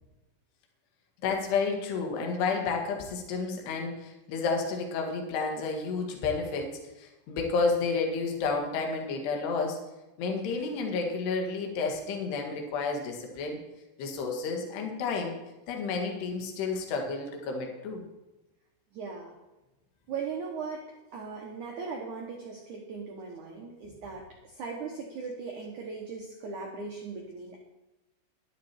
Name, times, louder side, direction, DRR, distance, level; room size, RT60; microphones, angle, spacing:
voice 1, 1.2-9.8 10.2-13.6 14.0-15.3 15.7-18.0, left 4 dB, 65° left, 2 dB, 3.6 m, -31 dB
voice 2, 18.9-19.4 20.1-27.6, right 5 dB, 80° right, 0 dB, 1.7 m, -39 dB
12.0 x 11.5 x 4.5 m, 1.0 s
omnidirectional pair, 5.6 m